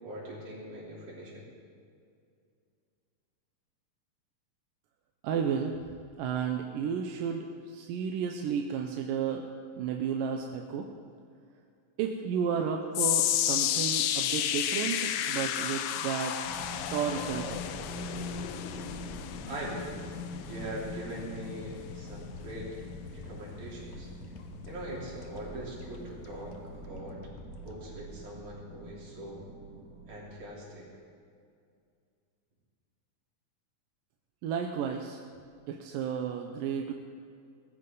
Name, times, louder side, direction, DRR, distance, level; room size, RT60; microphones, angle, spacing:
voice 1, 0.0-1.4 19.5-19.9 20.5-22.8 23.1-24.1 24.7-27.2 27.6-29.5 30.1-30.9, right 1 dB, 65° right, -5 dB, 5.2 m, -42 dB
voice 2, 5.2-5.8 6.2-9.5 9.7-10.9 12.0-17.6 34.4-35.2 35.7-36.9, right 7 dB, 85° right, 2 dB, 2.5 m, -32 dB
sound 1, 12.9-25.3 25.6-25.9 26.6-26.7, left 11 dB, 85° left, 2.4 m, -33 dB
sound 2, 16.4-30.3, equal, 30° right, 2.9 m, -44 dB
sound 3, 17.2-29.5 30.0-30.1, left 3 dB, 65° left, 2.3 m, -50 dB
20.0 x 14.5 x 3.9 m, 2.3 s
omnidirectional pair, 3.9 m